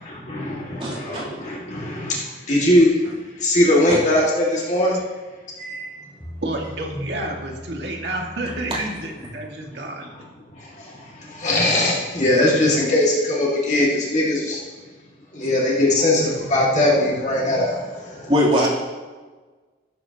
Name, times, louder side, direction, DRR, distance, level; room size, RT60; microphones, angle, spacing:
voice 1, 0.3-2.1 2.5-2.9 3.4-5.0 11.4-14.6 15.4-17.8, left 1 dB, 40° left, -4 dB, 2.0 m, -19 dB
voice 2, 0.8-1.2 3.9-4.0 5.6-5.9 8.7-8.8 9.4-9.5 18.3-18.7, equal, 30° right, -5 dB, 3.1 m, -22 dB
Bass guitar, 6.2-9.6, equal, 10° left, 3.9 m, -41 dB
voice 3, 6.4-10.1, right 1 dB, 65° right, 0 dB, 2.0 m, -30 dB
15.5 x 12.5 x 2.9 m, 1.4 s
head